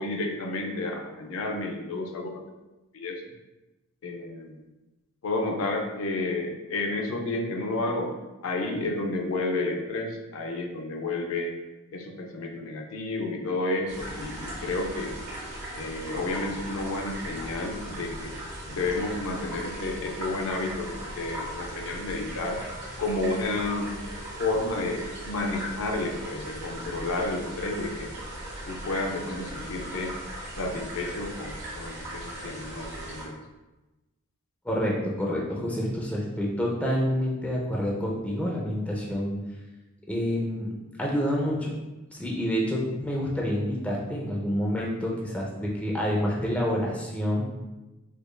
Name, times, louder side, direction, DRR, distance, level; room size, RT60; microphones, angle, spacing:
voice 1, 0.0-2.4 2.9-3.2 4.0-4.6 5.2-8.1 8.4-11.5 11.9-15.2 15.7-18.3 18.7-22.6 23.0-23.9 24.4-28.1 28.7-30.1 30.6-33.4, left 2 dB, 70° left, 2 dB, 0.5 m, -31 dB
sound 1, 13.9-33.2, right 1 dB, 55° right, 1.3 m, -38 dB
voice 2, 34.6-39.4 40.1-40.7 41.0-41.7 42.1-47.4, equal, 5° left, -3 dB, 0.5 m, -28 dB
4.9 x 2.5 x 2.2 m, 1.1 s
head